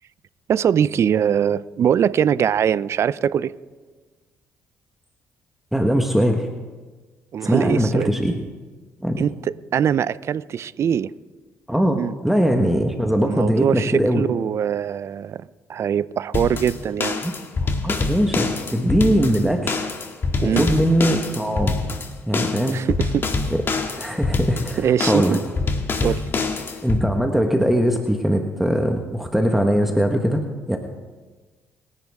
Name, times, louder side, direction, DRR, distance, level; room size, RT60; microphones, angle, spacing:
voice 1, 0.5-3.5 7.3-8.1 9.2-11.1 11.9-12.1 13.2-17.2 20.4-20.7 22.7-23.3 24.8-25.4 26.0-26.3, right 8 dB, 55° right, 0.5 m, -22 dB
voice 2, 5.7-6.5 7.4-8.4 9.0-9.2 11.7-14.2 17.2-17.3 17.8-19.9 20.4-21.7 22.3-22.8 24.0-25.4 26.8-30.8, equal, 5° right, 1.4 m, -21 dB
sound 1, 16.3-27.0, left 3 dB, 45° left, 2.0 m, -25 dB
27.0 x 10.5 x 3.6 m
supercardioid pair, 65°, 6 cm